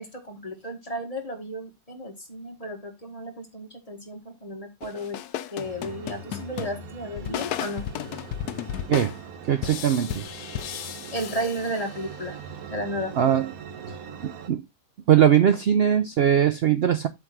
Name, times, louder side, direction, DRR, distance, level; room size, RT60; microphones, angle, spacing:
voice 1, 0.0-5.2 5.5-7.9 11.1-12.4 12.7-13.1, equal, 25° left, 1.6 m, -33 dB
sound 1, 4.8-12.2, left 11 dB, 75° left, 1.1 m, -35 dB
sound 2, 5.6-14.5, right 7 dB, 65° right, 1.3 m, -42 dB
voice 2, 9.5-10.2 13.2-13.5 14.2-14.6 15.1-17.1, right 9 dB, 80° right, 0.5 m, -20 dB
7.9 x 3.5 x 6.0 m
omnidirectional pair, 1.7 m